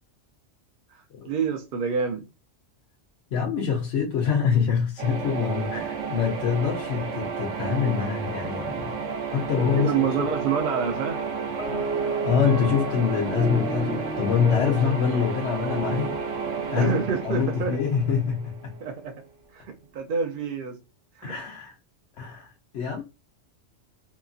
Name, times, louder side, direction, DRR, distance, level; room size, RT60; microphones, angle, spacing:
voice 1, 0.9-2.2 9.8-11.2 16.8-17.8 18.8-19.2 19.5-20.8 21.2-21.3, right 6 dB, 60° right, 0.6 m, -27 dB
voice 2, 3.3-8.9 9.3-10.3 12.0-16.2 16.7-18.7 21.2-21.8 22.2-23.0, left 7 dB, 70° left, 0.8 m, -25 dB
sound 1, 5.0-18.8, right 6 dB, 85° right, 1.0 m, -32 dB
sound 2, 9.6-18.7, right 2 dB, 5° left, 0.8 m, -34 dB
2.9 x 2.5 x 2.3 m
omnidirectional pair, 1.3 m